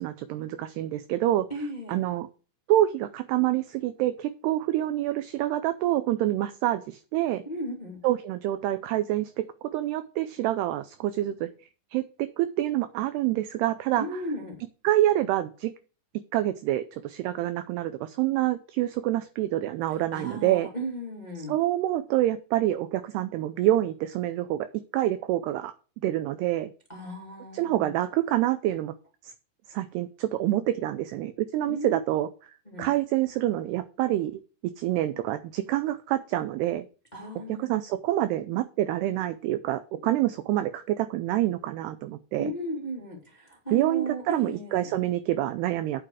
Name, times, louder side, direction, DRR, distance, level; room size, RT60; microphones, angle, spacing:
voice 1, 0.0-1.5 1.9-2.3 2.7-7.4 8.0-9.5 9.7-11.5 11.9-14.1 14.8-15.7 16.3-20.7 21.5-24.7 24.9-25.7 26.0-26.7 27.5-28.9 29.2-29.3 29.7-32.3 32.8-34.4 34.8-36.9 37.6-42.5 43.7-46.0, right 14 dB, 85° right, 12 dB, 2.4 m, -27 dB
voice 2, 1.5-2.0 7.4-8.0 14.0-14.6 19.9-21.5 26.9-27.9 31.7-32.0 32.7-32.9 37.1-37.8 42.4-44.9, right 1 dB, 15° left, 0 dB, 1.8 m, -35 dB
9.2 x 7.8 x 4.8 m, 0.35 s
omnidirectional pair, 5.4 m